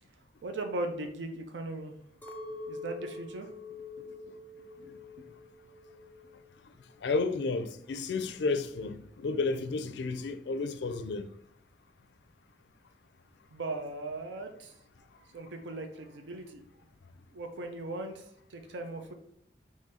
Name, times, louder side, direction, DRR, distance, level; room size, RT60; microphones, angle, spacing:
voice 1, 0.4-1.9 2.7-3.5 4.8-4.9 13.5-14.7 15.3-16.6 17.3-18.2 18.5-19.1, right 2 dB, 85° right, 0.5 m, -38 dB
Chink clink, 2.2-6.6 6.8-7.6, left 3 dB, 10° left, 0.4 m, -45 dB
voice 2, 7.0-11.3, left 3 dB, 75° left, 0.4 m, -32 dB
3.7 x 3.1 x 4.1 m
head